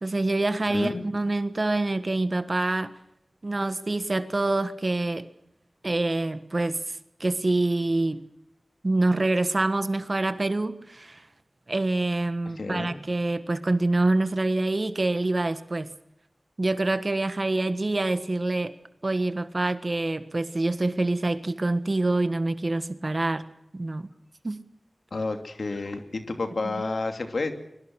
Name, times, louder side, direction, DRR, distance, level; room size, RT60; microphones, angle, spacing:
voice 1, 0.0-3.0 3.4-5.3 5.8-8.3 8.8-11.2 11.7-15.9 16.6-18.7 19.0-24.1 24.4-24.6 26.6-26.8, right 2 dB, 50° right, 1.4 m, -26 dB
voice 2, 0.7-1.1 12.6-13.0 25.1-27.5, left 3 dB, 80° left, 2.8 m, -30 dB
24.5 x 23.0 x 6.4 m
wide cardioid pair, 55°, 0 cm